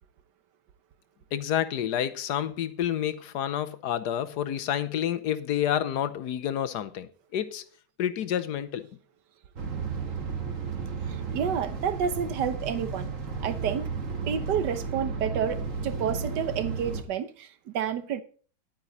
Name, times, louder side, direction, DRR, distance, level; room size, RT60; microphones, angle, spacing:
voice 1, 1.3-7.6 8.0-8.9, left 10 dB, 65° left, 1.3 m, -29 dB
sound 1, 9.6-17.0, right 5 dB, 45° right, 1.8 m, -33 dB
voice 2, 11.1-13.1 13.4-13.9 14.3-18.2, right 8 dB, 65° right, 1.6 m, -30 dB
11.0 x 9.0 x 4.0 m
omnidirectional pair, 2.1 m